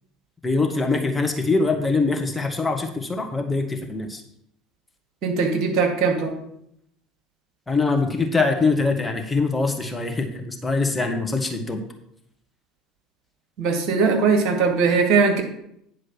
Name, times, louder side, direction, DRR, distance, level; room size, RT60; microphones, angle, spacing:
voice 1, 0.4-4.2 7.7-11.8, left 3 dB, 15° left, 2 dB, 1.4 m, -23 dB
voice 2, 5.2-6.3 13.6-15.4, right 5 dB, 50° right, 2 dB, 2.1 m, -20 dB
9.9 x 4.8 x 6.1 m, 0.74 s
figure-of-eight pair, 65°, 0 cm